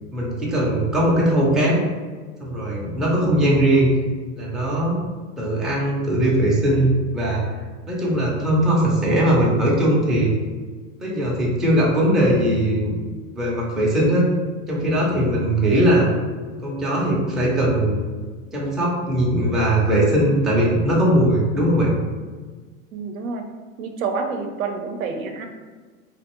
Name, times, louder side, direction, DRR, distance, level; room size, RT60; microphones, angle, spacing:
voice 1, 0.1-1.8 2.4-3.9 4.4-5.0 5.4-7.4 7.9-10.3 11.0-13.0 13.3-14.3 14.7-16.1 16.6-18.0 18.5-21.9, right 1 dB, ahead, -5 dB, 0.4 m, -20 dB
voice 2, 22.9-23.5 23.8-25.5, right 4 dB, 85° right, 5 dB, 0.6 m, -28 dB
3.0 x 2.5 x 2.9 m, 1.5 s
supercardioid pair, 120°, 40 cm